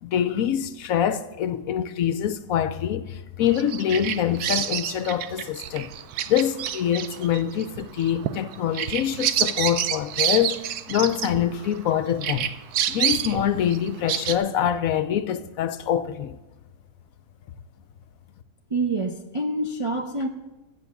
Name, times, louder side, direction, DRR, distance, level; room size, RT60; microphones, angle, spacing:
voice 1, 0.0-5.9 6.3-12.5 12.9-16.4, left 10 dB, 70° left, 0.9 m, -25 dB
Bird vocalization bird call bird song, 3.5-11.9 12.2-14.4, right 10 dB, 75° right, 1.1 m, -28 dB
voice 2, 18.7-20.3, right 2 dB, 40° right, 0.4 m, -26 dB
12.0 x 8.3 x 6.9 m
omnidirectional pair, 1.7 m